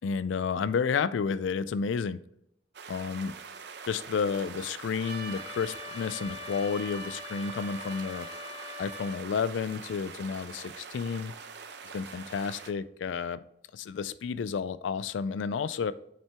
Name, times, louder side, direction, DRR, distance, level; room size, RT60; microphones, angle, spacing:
voice 1, 0.0-2.2 2.9-3.3 3.9-8.3 8.8-11.3 11.9-13.4 13.7-15.9, left 6 dB, 75° left, 0.3 m, -31 dB
sound 1, 2.7-12.7, right 5 dB, 60° right, 0.7 m, -44 dB
Trumpet, 5.0-9.2, left 2 dB, 30° right, 1.5 m, -42 dB
7.4 x 5.8 x 3.5 m
head